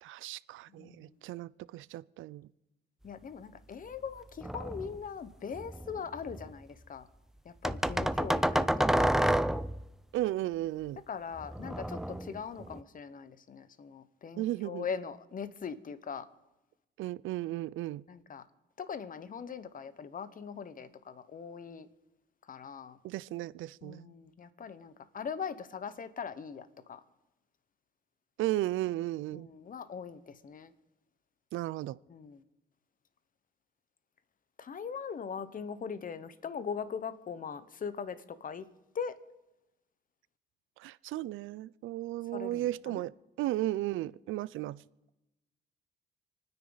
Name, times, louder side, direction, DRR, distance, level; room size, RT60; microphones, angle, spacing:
voice 1, 0.0-2.5 10.1-11.0 14.4-14.8 17.0-18.0 23.0-24.1 28.4-29.5 31.5-32.0 40.8-43.1 43.4-44.8, right 15 dB, 80° right, 0.5 m, -35 dB
voice 2, 0.7-1.1 3.0-7.1 7.4-9.4 11.1-16.3 18.1-18.5 18.8-21.9 22.5-23.0 23.8-27.0 29.3-30.7 32.1-32.4 34.6-38.7 38.9-39.2 42.3-43.1, left 6 dB, 45° left, 1.1 m, -41 dB
sound 1, 4.4-5.0 5.6-6.5 7.6-9.9 11.4-12.8, right 1 dB, ahead, 0.5 m, -30 dB
28.5 x 9.8 x 4.0 m
cardioid pair, 90°, 20 cm